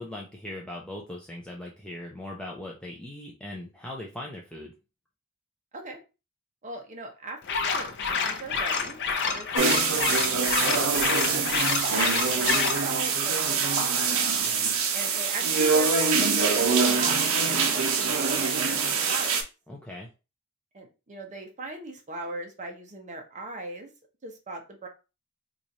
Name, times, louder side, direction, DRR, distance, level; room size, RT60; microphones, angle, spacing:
voice 1, 0.0-4.7 19.7-20.1, left 1 dB, 5° left, -2 dB, 0.5 m, -39 dB
voice 2, 6.6-14.0 14.9-19.4 20.7-23.9 24.2-24.9, right 2 dB, 35° right, 3 dB, 0.8 m, -39 dB
sound 1, 7.4-12.8, left 5 dB, 55° left, 0.6 m, -28 dB
sound 2, 9.5-19.4, right 5 dB, 65° right, 0.7 m, -24 dB
3.0 x 2.5 x 4.0 m, 0.30 s
head